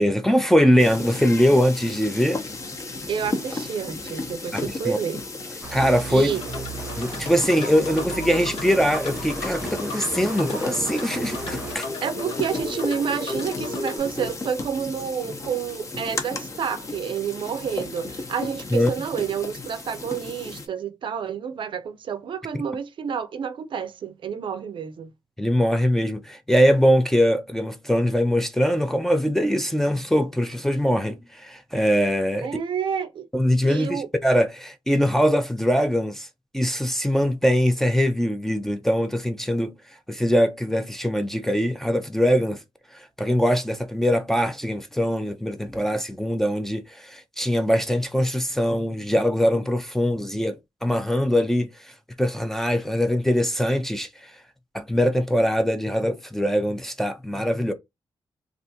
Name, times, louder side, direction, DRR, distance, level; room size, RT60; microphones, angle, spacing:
voice 1, 0.0-2.4 4.5-5.0 5.7-6.3 7.0-11.9 18.7-18.9 25.4-32.6 33.3-36.3 36.5-39.7 40.1-42.6 42.9-51.7 52.2-54.1 54.7-57.7, equal, 5° left, 0.4 m, -22 dB
sound 1, 0.8-20.7, left 3 dB, 35° left, 0.7 m, -34 dB
voice 2, 3.1-5.2 6.1-6.4 12.0-25.1 32.4-33.3 33.6-34.1, right 7 dB, 65° right, 0.5 m, -29 dB
sound 2, 5.6-11.7, right 4 dB, 15° right, 0.8 m, -37 dB
sound 3, 6.3-14.0, left 2 dB, 75° left, 0.9 m, -34 dB
3.3 x 2.5 x 2.7 m
wide cardioid pair, 140°, 9 cm